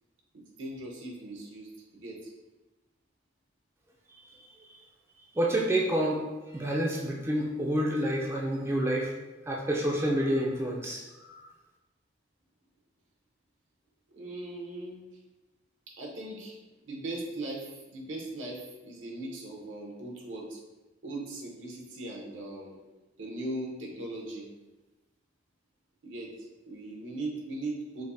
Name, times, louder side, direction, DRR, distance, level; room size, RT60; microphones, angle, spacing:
voice 1, 0.3-2.2 14.1-15.0 16.0-16.6 16.8-20.6 21.0-22.8 23.2-24.5 26.0-26.3 26.7-28.0, right 2 dB, 85° right, -1 dB, 0.8 m, -39 dB
voice 2, 5.3-9.1 9.5-11.4, right 1 dB, 15° right, -2 dB, 0.3 m, -28 dB
5.0 x 2.0 x 2.6 m, 1.1 s
head